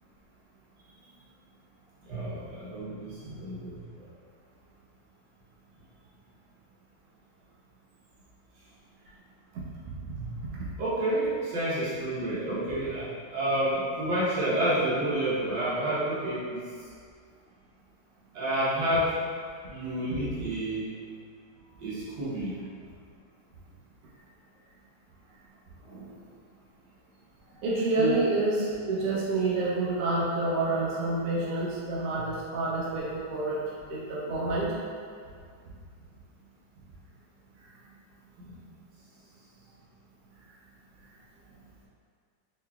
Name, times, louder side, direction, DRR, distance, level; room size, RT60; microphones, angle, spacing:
voice 1, 2.1-3.8 10.2-10.3 10.8-16.6 18.3-19.1 19.7-20.8 21.8-22.6 28.0-28.2 32.2-32.3 38.4-38.6, right 1 dB, 85° right, -9 dB, 1.8 m, -29 dB
voice 2, 9.5-9.9 25.8-26.1 27.6-33.6 33.9-34.7, right 2 dB, 60° right, -7 dB, 1.0 m, -28 dB
3.9 x 3.3 x 2.3 m, 2.1 s
omnidirectional pair, 2.0 m